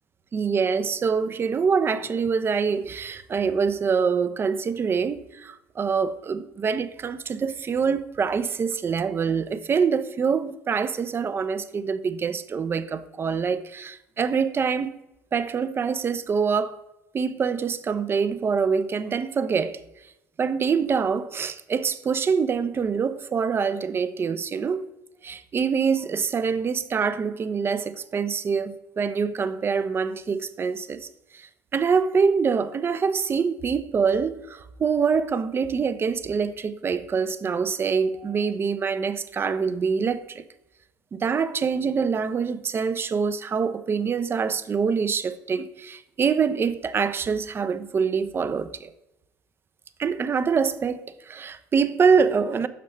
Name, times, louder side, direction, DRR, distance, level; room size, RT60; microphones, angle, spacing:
voice 1, 0.3-15.0 15.3-16.8 17.1-19.8 20.4-24.9 25.2-31.1 31.7-40.4 41.1-48.9 50.0-52.7, right 6 dB, 30° right, 0.4 m, -25 dB
6.6 x 5.2 x 3.2 m
figure-of-eight pair, 60°, 8 cm